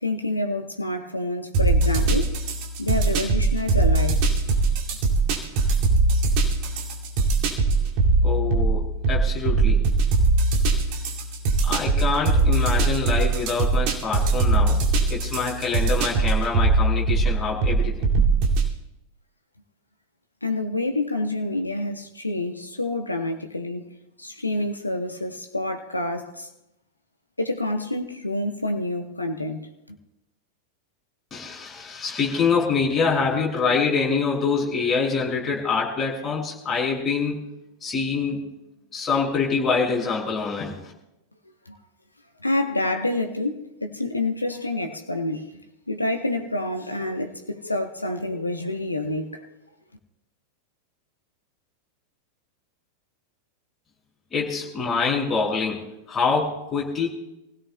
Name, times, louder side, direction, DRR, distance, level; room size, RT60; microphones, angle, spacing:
voice 1, 0.0-2.4 2.8-4.4 20.4-23.9 24.2-26.5 27.4-29.7 41.7-41.8 42.4-45.6 45.9-49.5, left 2 dB, 85° left, 1.1 m, -28 dB
sound 1, 1.5-18.7, right 3 dB, 45° right, 2.4 m, -21 dB
voice 2, 8.2-9.8 11.6-14.8 15.1-18.3 31.3-37.4 37.8-38.5 38.9-40.8 54.3-55.8 56.1-57.1, left 5 dB, 20° left, 6.2 m, -25 dB
27.5 x 16.5 x 2.3 m
figure-of-eight pair, 90°, 0 cm